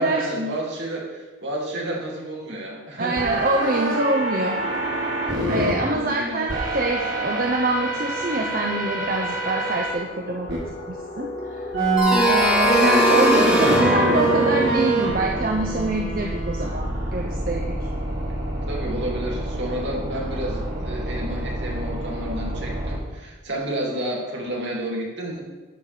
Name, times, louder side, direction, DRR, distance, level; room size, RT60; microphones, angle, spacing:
voice 1, 0.0-3.2 5.8-6.4 18.7-25.4, right 1 dB, 60° right, -2 dB, 2.5 m, -30 dB
voice 2, 3.0-4.6 5.5-10.6 10.9-11.6 12.2-17.7, right 2 dB, 45° right, 0 dB, 0.8 m, -25 dB
sound 1, 3.2-5.7 6.5-9.9 10.5-10.6 11.7-23.0, right 3 dB, 80° right, 3.4 m, -26 dB
sound 2, 4.9-5.0 5.2-16.8, left 1 dB, 40° left, 1.3 m, -37 dB
sound 3, 12.0-16.6, left 1 dB, 5° right, 2.3 m, -22 dB
12.5 x 4.6 x 6.8 m, 1.3 s
head